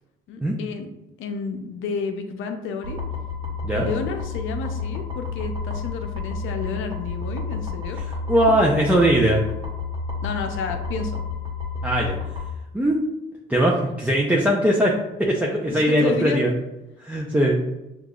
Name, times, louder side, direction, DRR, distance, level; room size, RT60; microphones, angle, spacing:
voice 1, 0.3-0.9 1.2-3.0 3.7-8.1 10.2-11.2 15.7-16.4, left 4 dB, 85° left, 5 dB, 0.6 m, -31 dB
sound 1, 2.8-12.5, left 4 dB, 25° right, 1.3 m, -30 dB
voice 2, 8.3-9.4 11.8-12.2 12.7-13.0 13.5-16.5 17.0-17.6, right 1 dB, 10° right, -3 dB, 0.6 m, -20 dB
6.5 x 2.5 x 2.4 m, 0.96 s
cardioid pair, 90°, 20 cm